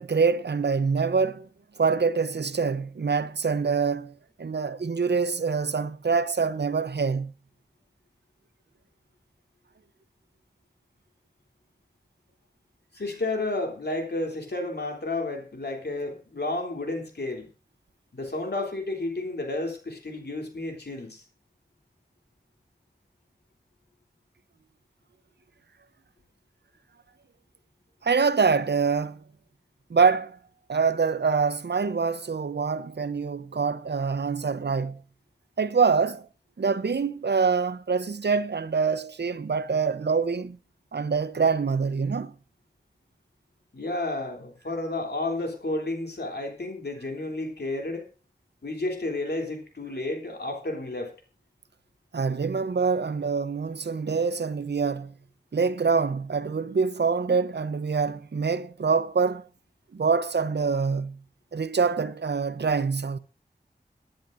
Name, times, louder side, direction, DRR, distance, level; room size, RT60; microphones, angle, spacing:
voice 1, 0.0-1.5 1.8-7.3 28.0-29.2 29.9-30.4 30.7-35.0 35.6-36.3 36.6-40.6 40.9-42.3 52.1-55.1 55.5-59.4 59.9-61.2 61.5-63.2, right 5 dB, 85° right, 0.8 m, -25 dB
voice 2, 12.9-17.5 18.1-21.2 43.7-48.1 48.6-51.1, left 2 dB, 75° left, 3.3 m, -31 dB
23.0 x 10.5 x 2.7 m
wide cardioid pair, 60°, 17 cm